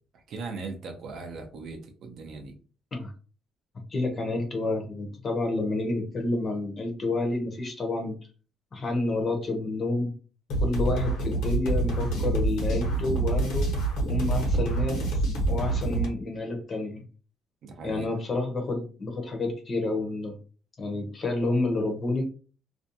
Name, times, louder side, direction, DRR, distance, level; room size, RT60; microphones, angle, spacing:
voice 1, 0.1-2.5 17.6-18.1, right 4 dB, 50° right, 4 dB, 0.5 m, -39 dB
voice 2, 3.9-8.1 8.7-10.1 10.6-13.7 14.1-15.2 15.5-17.0 17.8-20.4 20.8-22.2, left 2 dB, 25° left, 3 dB, 0.6 m, -29 dB
sound 1, 10.5-16.1, right 2 dB, 90° left, 1.0 m, -26 dB
2.5 x 2.2 x 2.7 m, 0.37 s
cardioid pair, 160°, 0 cm